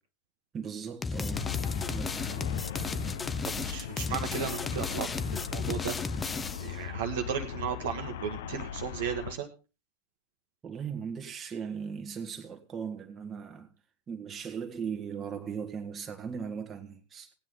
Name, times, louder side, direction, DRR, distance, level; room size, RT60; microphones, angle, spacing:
voice 1, 0.5-1.6 1.9-2.6 3.2-3.7 10.6-13.7 14.1-17.3, right 7 dB, 20° right, 1.7 m, -38 dB
sound 1, 1.0-6.8, left 4 dB, 15° left, 0.6 m, -34 dB
Traffic noise roadway noise, 1.3-9.3, left 9 dB, 60° left, 0.9 m, -38 dB
voice 2, 3.4-6.0 6.6-9.5, right 8 dB, 55° right, 1.5 m, -35 dB
17.0 x 9.4 x 3.8 m
figure-of-eight pair, 90°, 0 cm